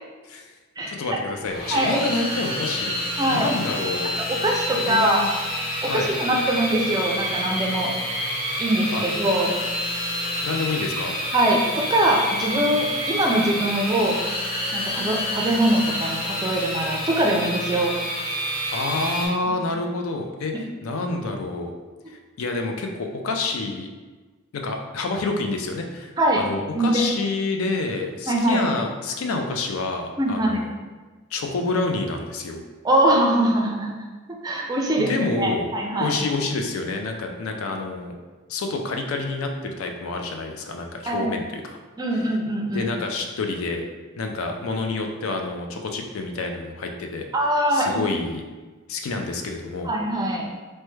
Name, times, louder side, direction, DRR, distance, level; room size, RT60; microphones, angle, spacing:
voice 1, 0.9-2.9 3.3-4.1 4.7-5.3 5.8-6.1 8.9-9.0 10.4-11.2 18.7-20.5 20.8-21.7 22.1-23.9 24.5-30.7 31.3-32.6 35.0-35.7 36.0-38.1 38.5-41.8 42.7-43.8 44.2-47.2 47.7-48.4 48.9-49.9, left 3 dB, 85° left, 4 dB, 0.4 m, -28 dB
sound 1, 1.4-19.3, equal, 45° left, 0.8 m, -28 dB
voice 2, 1.7-2.0 3.2-3.5 4.3-5.2 5.8-7.9 8.6-9.5 11.3-14.2 14.7-18.0 26.2-26.4 26.7-27.1 28.3-28.6 30.2-30.6 32.8-33.9 34.3-36.2 41.0-41.3 42.0-42.9 47.3-48.0 49.8-50.5, right 1 dB, 20° right, 0 dB, 0.4 m, -22 dB
3.3 x 2.1 x 3.1 m, 1.3 s
head